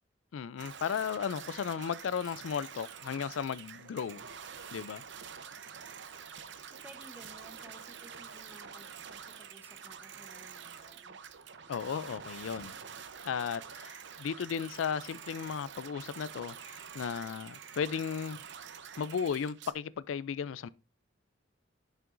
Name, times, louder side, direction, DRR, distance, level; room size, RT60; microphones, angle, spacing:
voice 1, 0.3-4.2 4.7-5.0 11.7-12.8 13.2-18.4 19.0-20.7, left 7 dB, 85° left, 0.4 m, -35 dB
sound 1, 0.6-19.7, right 7 dB, 65° right, 0.7 m, -47 dB
voice 2, 6.7-11.2, right 1 dB, 10° right, 0.9 m, -56 dB
11.0 x 5.7 x 2.5 m
head